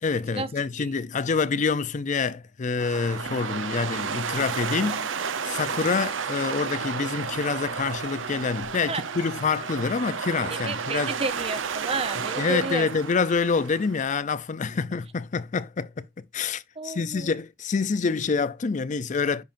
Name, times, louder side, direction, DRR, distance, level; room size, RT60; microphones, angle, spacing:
voice 1, 0.0-5.1 5.4-11.1 12.2-19.4, left 5 dB, 40° left, 0.5 m, -27 dB
sound 1, 2.8-14.0, right 6 dB, 90° right, 0.8 m, -32 dB
voice 2, 10.7-12.9 16.8-17.3, right 3 dB, 30° right, 0.7 m, -31 dB
10.5 x 5.8 x 2.6 m
head